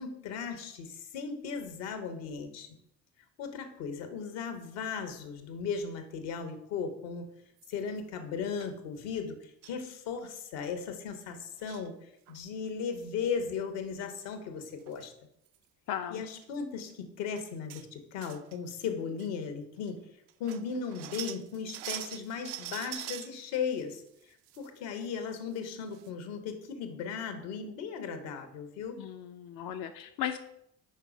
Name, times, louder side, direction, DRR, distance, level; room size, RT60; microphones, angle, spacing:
voice 1, 0.0-2.7 3.4-7.3 7.7-15.1 16.1-20.0 20.4-24.0 24.6-29.0, left 6 dB, 65° left, 7 dB, 1.1 m, -37 dB
sound 1, 7.6-8.0 8.6-8.7 9.6-9.8 10.2-10.3 10.5-10.7 11.4-11.9 12.3-12.7 14.4-14.5 14.8-15.0 15.5-15.6 16.3-16.5 16.9-17.0 17.4-17.9 18.2-18.9 19.2-19.3 19.9-20.0 20.3-23.3 23.8-24.7 25.0-25.1 25.5-25.6 25.9-26.1, right 14 dB, 65° right, 0.6 m, -43 dB
voice 2, 15.9-16.2 29.0-30.4, left 10 dB, 45° left, 7 dB, 0.5 m, -36 dB
5.7 x 4.8 x 4.9 m, 0.78 s
figure-of-eight pair, 45°, 50 cm